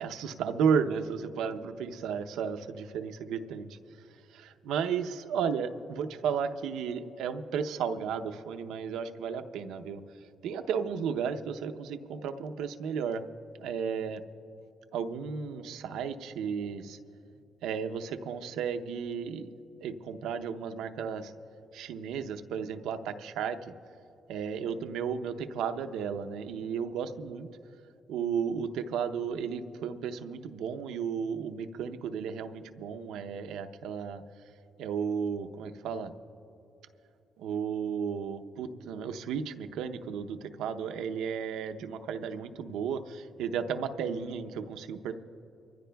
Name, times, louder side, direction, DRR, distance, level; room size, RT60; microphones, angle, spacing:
voice 1, 0.0-3.8 4.3-10.0 10.4-13.3 13.6-14.2 14.9-17.0 17.6-19.5 19.8-21.3 21.7-23.7 24.3-27.5 28.1-34.2 34.8-36.1 37.4-45.1, right 7 dB, 90° right, 8 dB, 0.6 m, -33 dB
24.5 x 15.5 x 2.3 m, 2.7 s
cardioid pair, 90°, 0 cm